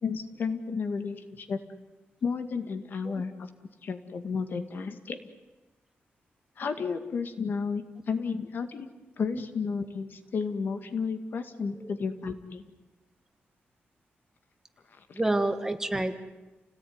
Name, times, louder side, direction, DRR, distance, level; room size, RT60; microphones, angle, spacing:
voice 1, 0.0-1.6 2.2-3.5 3.8-5.2 6.6-8.9 9.2-12.6 15.1-15.2, left 5 dB, 60° left, 8 dB, 2.1 m, -32 dB
voice 2, 15.1-16.1, right 2 dB, 15° right, 8 dB, 1.5 m, -28 dB
29.5 x 18.0 x 9.6 m, 1.1 s
wide cardioid pair, 145°, 4 cm